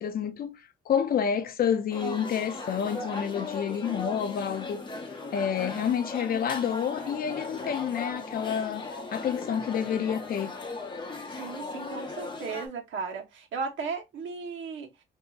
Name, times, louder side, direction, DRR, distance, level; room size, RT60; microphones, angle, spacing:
voice 1, 0.0-4.9 5.3-10.6, left 8 dB, 50° left, 0.5 m, -29 dB
sound 1, 1.9-12.7, left 3 dB, 25° left, 0.7 m, -37 dB
voice 2, 11.4-14.9, right 5 dB, 85° right, 1.1 m, -35 dB
3.9 x 2.7 x 2.3 m
wide cardioid pair, 165°, 19 cm